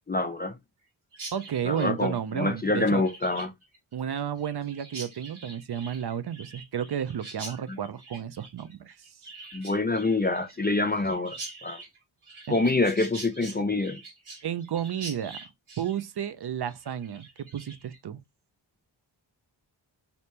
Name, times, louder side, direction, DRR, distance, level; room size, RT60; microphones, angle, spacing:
voice 1, 0.1-0.6 1.6-3.5 7.7-7.8 9.5-11.8 12.5-14.0, left 2 dB, 20° left, 0.4 m, -26 dB
Chirp tweet, 1.1-18.0, right 3 dB, 85° right, 1.5 m, -45 dB
voice 2, 1.3-3.0 3.9-9.0 12.5-12.6 14.4-15.4 15.8-18.2, right 9 dB, 55° right, 0.5 m, -32 dB
2.9 x 2.8 x 3.2 m
wide cardioid pair, 60°, 48 cm